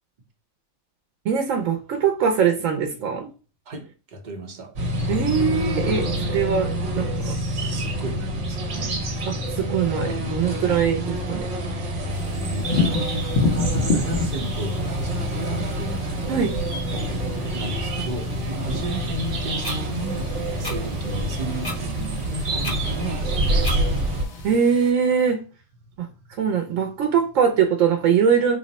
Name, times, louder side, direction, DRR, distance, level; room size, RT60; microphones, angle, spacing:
voice 1, 1.2-3.3 5.1-7.3 9.5-11.5 16.3-16.5 24.4-25.4 26.0-28.6, right 7 dB, 90° right, 5 dB, 1.0 m, -22 dB
voice 2, 3.7-4.7 6.1-6.3 7.0-8.9 12.0-12.7 13.5-16.0 16.9-23.8, right 1 dB, 45° right, 2 dB, 0.8 m, -34 dB
sound 1, 4.8-24.3, right 1 dB, 70° right, 1.2 m, -27 dB
sound 2, 12.1-24.9, left 3 dB, 65° left, 1.0 m, -31 dB
sound 3, 19.6-19.8 20.6-20.8 21.6-21.8 22.6-22.8 23.6-23.8, left 2 dB, 25° left, 0.7 m, -31 dB
3.2 x 2.1 x 4.0 m, 0.35 s
omnidirectional pair, 1.3 m